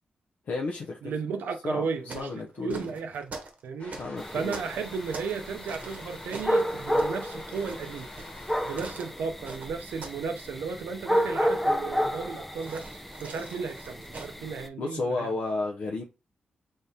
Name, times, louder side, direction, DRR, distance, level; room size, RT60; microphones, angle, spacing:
voice 1, 0.5-1.1 1.6-2.9 4.0-4.6 14.8-16.0, left 3 dB, 65° left, 0.5 m, -32 dB
voice 2, 1.0-3.3 3.6-4.0 4.3-8.1 8.6-15.3, right 5 dB, 90° right, 0.5 m, -34 dB
sound 1, 1.8-5.4 5.7-10.3 10.5-10.9 12.6-14.4, right 3 dB, 55° right, 0.9 m, -44 dB
sound 2, 3.8-8.8, left 2 dB, 50° left, 1.2 m, -47 dB
sound 3, 4.2-14.7, equal, 5° left, 0.5 m, -31 dB
3.7 x 3.4 x 2.7 m
cardioid pair, 75°, 3 cm